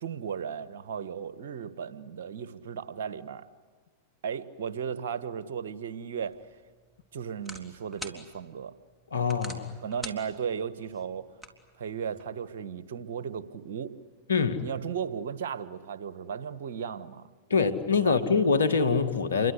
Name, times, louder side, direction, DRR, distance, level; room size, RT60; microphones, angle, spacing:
voice 1, 0.0-3.4 4.2-6.4 7.1-8.7 9.8-11.3 11.8-13.9 14.6-17.3 18.0-18.2, right 7 dB, 70° right, 13 dB, 1.6 m, -35 dB
sound 1, 6.2-12.3, equal, 5° right, 3.6 m, -47 dB
voice 2, 9.1-9.8 14.3-14.6 17.5-19.5, left 5 dB, 85° left, 11 dB, 2.1 m, -24 dB
29.0 x 23.5 x 8.3 m, 1.5 s
hypercardioid pair, 100°, 0 cm